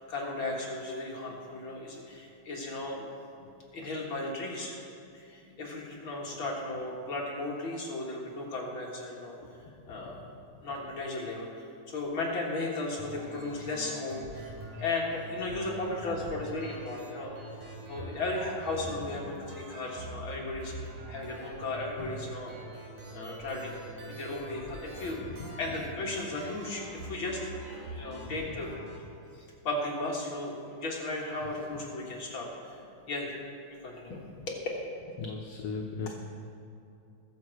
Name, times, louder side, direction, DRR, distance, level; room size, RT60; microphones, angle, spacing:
voice 1, 0.0-3.1 3.7-4.8 5.1-9.3 9.9-10.3 10.6-14.5 14.8-17.4 17.9-20.7 21.1-22.6 23.1-23.8 24.1-28.7 29.3-32.8 33.1-33.4 33.7-34.6, left 2 dB, 45° left, -3 dB, 2.1 m, -35 dB
voice 2, 9.9-10.2 10.5-10.6 14.7-14.8 22.0-22.1 25.3-25.5 28.1-28.6 31.7-31.8 35.2-36.1, left 5 dB, 65° left, 0 dB, 1.7 m, -40 dB
sound 1, 13.0-29.0, right 1 dB, 75° right, 4.0 m, -44 dB
22.0 x 7.4 x 4.6 m, 2.7 s
omnidirectional pair, 3.5 m